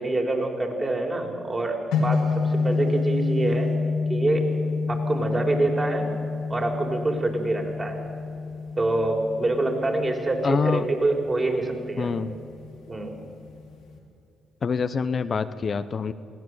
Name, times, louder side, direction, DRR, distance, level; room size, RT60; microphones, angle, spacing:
voice 1, 0.0-3.7 4.1-4.5 4.9-6.1 6.5-8.0 8.8-12.1 12.9-13.2, right 2 dB, 30° right, 2 dB, 4.6 m, -26 dB
sound 1, 1.9-14.0, left 4 dB, 90° left, 2.7 m, -29 dB
voice 2, 10.4-10.8 12.0-12.4 14.6-16.1, left 5 dB, 50° left, 11 dB, 0.8 m, -25 dB
22.0 x 16.5 x 7.9 m, 2.6 s
supercardioid pair, 55°, 0 cm